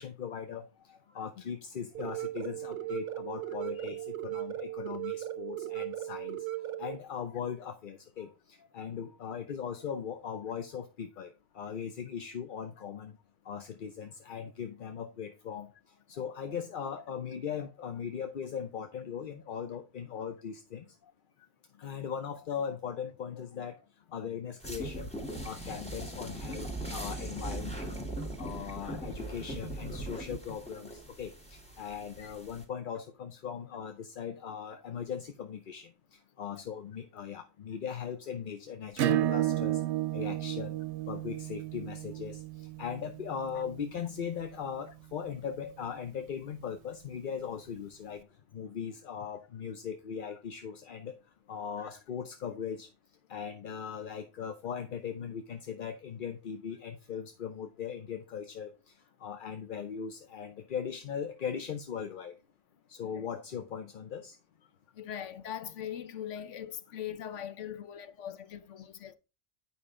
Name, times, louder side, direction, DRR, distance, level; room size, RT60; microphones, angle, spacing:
voice 1, 0.0-6.4 6.8-13.2 13.5-15.7 16.1-20.8 21.8-23.8 24.1-25.1 25.4-27.9 28.4-35.9 36.4-39.8 40.1-40.8 41.1-42.4 42.8-48.2 48.5-51.2 51.5-52.9 53.3-58.7 59.2-62.3 62.9-64.3, left 7 dB, 50° left, 0.8 m, -39 dB
sound 1, 1.9-6.9, right 15 dB, 50° right, 0.8 m, -37 dB
sound 2, 24.6-32.6, right 1 dB, 5° left, 1.6 m, -40 dB
Acoustic guitar / Strum, 39.0-44.2, right 14 dB, 75° right, 0.9 m, -32 dB
voice 2, 65.0-69.1, left 10 dB, 85° left, 1.1 m, -41 dB
8.7 x 5.5 x 3.7 m
omnidirectional pair, 1.2 m